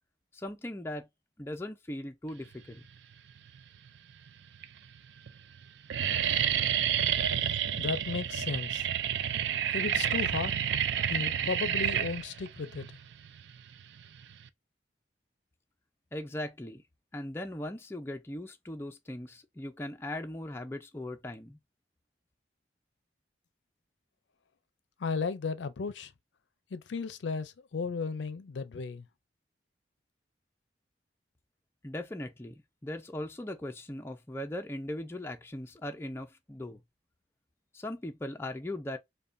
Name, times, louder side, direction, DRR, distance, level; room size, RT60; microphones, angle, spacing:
voice 1, 0.3-1.1 1.4-2.8 16.1-16.8 17.1-21.6 31.8-36.8 37.7-39.0, left 1 dB, 15° left, 0.4 m, -39 dB
sound 1, 3.3-3.9 4.5-4.6 4.9-5.3 5.5-14.5, right 9 dB, 75° right, 0.4 m, -30 dB
voice 2, 7.8-8.8 9.7-10.5 11.1-12.9 25.0-26.1 26.7-29.1, left 4 dB, 80° left, 0.5 m, -34 dB
5.3 x 2.2 x 2.5 m
head